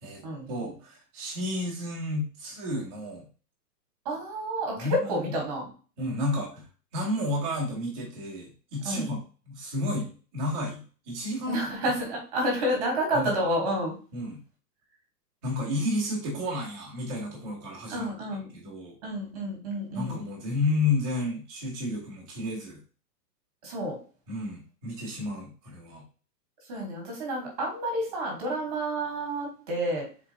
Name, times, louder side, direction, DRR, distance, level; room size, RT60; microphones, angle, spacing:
voice 1, 0.5-3.2 4.8-5.3 6.0-6.6 6.9-9.2 9.4-11.9 13.1-13.3 14.1-14.4 15.4-18.1 18.5-19.0 19.9-22.8 24.3-26.0, left 2 dB, ahead, -25 dB, 0.6 m, -31 dB
voice 2, 4.0-5.7 8.8-9.1 11.5-13.9 17.9-18.5 19.0-20.2 23.6-24.0 26.7-30.1, right 1 dB, 25° right, 0 dB, 1.2 m, -29 dB
4.1 x 3.6 x 2.6 m, 0.36 s
hypercardioid pair, 180°, 50 cm